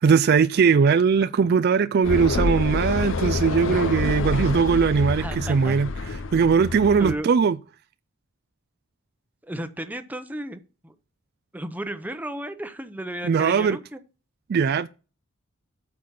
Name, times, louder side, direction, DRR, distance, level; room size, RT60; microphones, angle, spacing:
voice 1, 0.0-5.9 6.3-7.6 13.2-13.8 14.5-14.9, right 6 dB, 50° right, 0.3 m, -20 dB
sound 1, 2.0-7.1, left 3 dB, 65° left, 0.7 m, -27 dB
voice 2, 5.2-5.8 7.0-7.3 9.4-10.9 11.5-14.0, right 1 dB, 10° right, 0.8 m, -34 dB
8.5 x 5.9 x 5.4 m
head